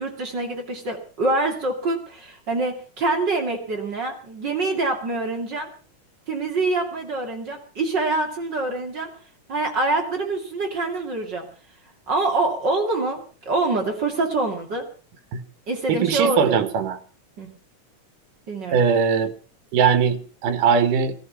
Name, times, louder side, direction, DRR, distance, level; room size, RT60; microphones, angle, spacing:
voice 1, 0.0-5.7 6.3-9.1 9.5-11.4 12.1-14.8 15.7-16.6 17.4-17.5 18.5-18.8, right 2 dB, 35° right, 2 dB, 3.0 m, -25 dB
voice 2, 15.9-17.0 18.7-19.3 19.7-21.1, right 6 dB, 85° right, 11 dB, 3.0 m, -20 dB
17.5 x 13.5 x 5.7 m, 0.40 s
omnidirectional pair, 3.6 m